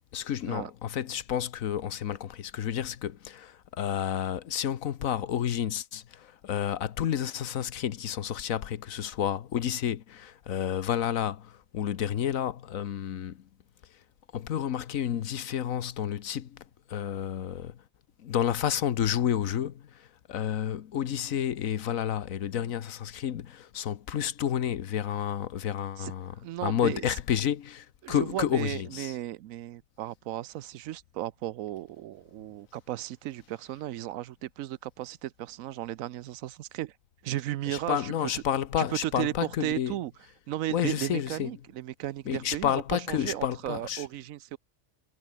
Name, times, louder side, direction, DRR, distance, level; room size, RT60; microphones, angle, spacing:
voice 1, 0.1-13.4 14.3-16.6 16.9-17.8 18.2-26.4 26.6-29.1 37.7-39.9 40.7-41.5 42.3-44.1, left 9 dB, 75° left, 1.3 m, -30 dB
voice 2, 26.4-27.1 28.0-36.9 37.2-38.4 38.8-40.1 40.5-44.6, right 14 dB, 75° right, 1.0 m, -35 dB
omnidirectional pair, 1.4 m